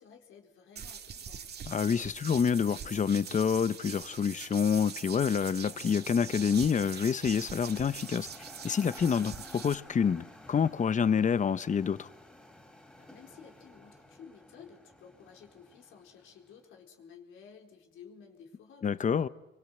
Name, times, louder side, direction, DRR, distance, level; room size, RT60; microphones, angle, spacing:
voice 1, 0.0-1.5 13.0-19.3, left 6 dB, 80° left, 4.3 m, -54 dB
sound 1, 0.8-9.7, right 7 dB, 55° right, 2.0 m, -43 dB
voice 2, 1.7-8.3 8.6-12.1 18.8-19.3, left 7 dB, 40° left, 0.9 m, -27 dB
sound 2, 2.7-16.7, left 1 dB, 5° left, 3.6 m, -54 dB
28.0 x 24.0 x 7.9 m
cardioid pair, 90°, 20 cm